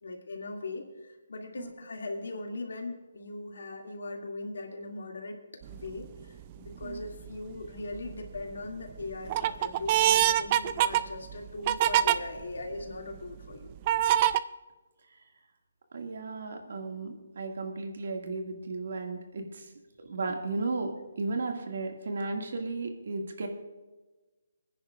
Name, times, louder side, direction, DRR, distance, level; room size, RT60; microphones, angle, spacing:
voice 1, 0.0-5.4 5.7-13.7, left 2 dB, 80° left, 2 dB, 2.3 m, -39 dB
sound 1, 5.7-6.1 6.7-7.3 7.8-8.4 8.9-12.2 12.8-12.9 13.9-14.4, right 12 dB, 30° right, 0.3 m, -25 dB
voice 2, 15.9-19.7 20.0-23.5, right 3 dB, 65° right, 4 dB, 2.0 m, -34 dB
24.0 x 10.0 x 2.4 m, 1.2 s
hypercardioid pair, 160°, 0 cm